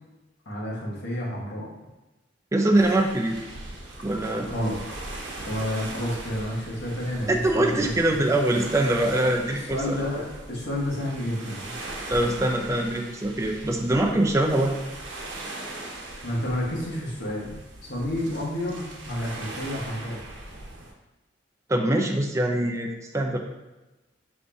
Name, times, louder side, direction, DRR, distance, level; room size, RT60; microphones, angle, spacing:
voice 1, 0.5-1.7 4.5-4.7 5.4-7.9 9.2-10.2 10.5-11.7 16.2-20.2, left 1 dB, 65° left, -4 dB, 1.3 m, -30 dB
voice 2, 2.5-3.4 4.0-4.5 7.3-10.0 12.1-14.8 21.7-23.4, right 1 dB, 15° right, 2 dB, 0.4 m, -23 dB
sound 1, 2.7-20.9, right 2 dB, 80° right, 0.8 m, -40 dB
5.1 x 2.6 x 3.5 m, 1.1 s
head